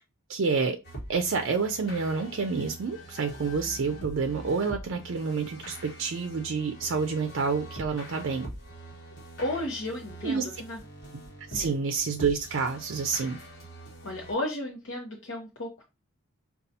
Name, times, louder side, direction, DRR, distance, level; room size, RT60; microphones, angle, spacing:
voice 1, 0.3-0.8 1.1-8.5 10.2-10.4 11.5-13.4, right 5 dB, 60° right, 0.4 m, -28 dB
sound 1, 0.8-14.3, right 1 dB, 50° left, 1.3 m, -44 dB
voice 2, 9.4-10.8 11.5-11.8 14.0-15.8, left 1 dB, 65° left, 0.8 m, -34 dB
5.3 x 2.3 x 2.7 m
head